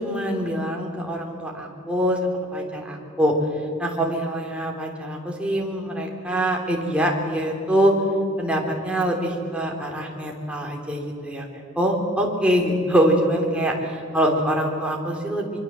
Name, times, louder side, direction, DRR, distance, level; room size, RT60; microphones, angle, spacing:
voice 1, 0.0-3.4 3.8-7.9 8.4-11.5 11.8-15.6, equal, 5° right, -1 dB, 3.5 m, -24 dB
24.0 x 23.5 x 7.6 m, 2.4 s
head